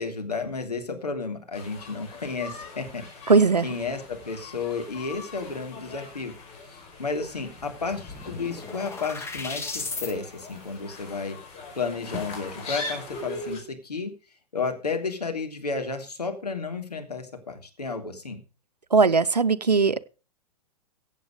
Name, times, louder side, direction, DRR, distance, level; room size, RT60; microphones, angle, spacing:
voice 1, 0.0-3.3 3.6-6.3 6.7-11.4 11.8-14.1 14.5-18.4, left 4 dB, 75° left, 5 dB, 3.3 m, -32 dB
sound 1, 1.5-13.6, left 3 dB, 30° left, 5.6 m, -41 dB
voice 2, 3.3-3.7 18.9-20.0, right 4 dB, 85° right, 15 dB, 0.7 m, -19 dB
sound 2, 7.3-7.4 7.6-10.1, left 3 dB, 10° left, 2.2 m, -36 dB
15.5 x 8.4 x 5.1 m, 0.33 s
figure-of-eight pair, 105°, 20 cm